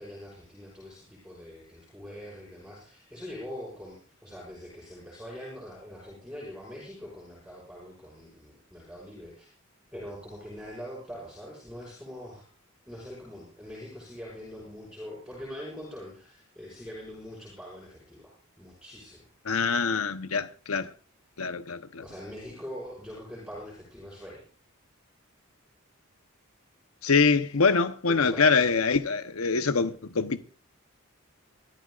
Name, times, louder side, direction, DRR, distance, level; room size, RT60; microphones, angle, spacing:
voice 1, 0.0-9.5 9.9-12.5 12.9-19.3 22.0-24.4 28.1-28.6, equal, 5° right, 6.0 m, -43 dB
voice 2, 19.4-20.9 21.4-22.0 27.0-30.4, left 4 dB, 90° left, 1.0 m, -24 dB
25.0 x 13.5 x 2.5 m
head